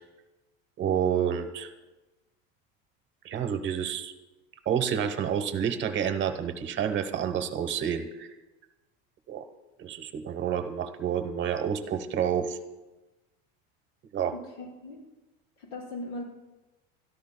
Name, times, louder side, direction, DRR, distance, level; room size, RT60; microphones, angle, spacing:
voice 1, 0.8-1.7 3.2-4.1 4.7-8.3 9.3-9.4 9.8-12.6 14.1-14.3, right 8 dB, 40° right, 8 dB, 1.0 m, -29 dB
voice 2, 14.3-15.0 15.6-16.2, left 2 dB, 75° left, -4 dB, 6.4 m, -39 dB
30.0 x 13.5 x 2.2 m, 1.1 s
supercardioid pair, 130°, 29 cm